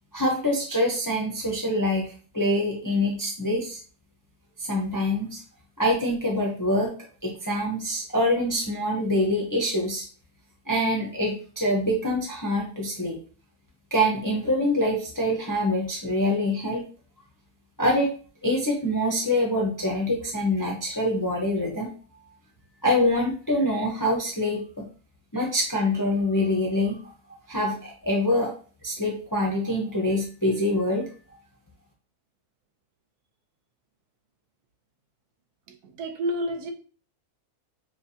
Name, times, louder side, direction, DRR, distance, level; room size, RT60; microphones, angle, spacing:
voice 1, 0.1-3.8 4.6-5.4 5.8-6.9 7.2-10.1 10.7-13.2 13.9-16.8 17.8-18.1 18.4-21.9 22.8-24.9 25.3-27.1 27.5-28.5 28.8-31.1, left 1 dB, 20° left, 0.5 m, -25 dB
voice 2, 35.7-36.7, equal, 80° right, 1.3 m, -30 dB
6.5 x 2.3 x 2.7 m
omnidirectional pair, 1.6 m